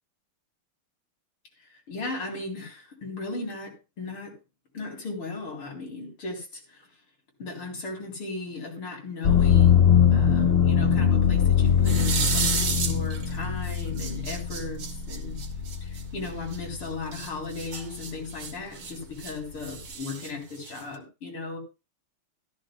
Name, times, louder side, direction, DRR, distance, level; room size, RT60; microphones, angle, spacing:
voice 1, 1.6-4.3 4.7-6.9 7.4-9.8 10.1-15.3 15.8-21.6, left 3 dB, 80° left, 0 dB, 4.8 m, -36 dB
sound 1, 9.2-17.1 17.5-18.3, left 8 dB, 45° left, 0.8 m, -22 dB
sound 2, 11.8-13.3 13.6-16.6 17.1-19.3 19.6-21.0, right 6 dB, 65° right, 2.4 m, -32 dB
13.5 x 13.5 x 2.3 m, 0.27 s
omnidirectional pair, 2.4 m